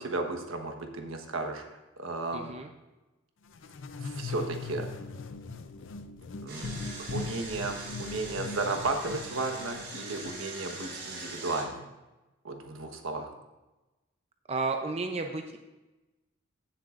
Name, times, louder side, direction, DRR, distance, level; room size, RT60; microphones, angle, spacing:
voice 1, 0.0-2.5 4.0-4.9 6.4-6.7 7.1-11.8 12.4-13.3, right 3 dB, 85° right, 4 dB, 1.2 m, -34 dB
voice 2, 2.3-2.7 14.5-15.6, right 3 dB, 30° right, 4 dB, 0.5 m, -32 dB
sound 1, 3.5-10.3, left 4 dB, 70° left, 0.5 m, -40 dB
Engine, 6.5-11.6, right 2 dB, 50° right, 3.1 m, -42 dB
15.5 x 7.5 x 2.5 m, 1.1 s
head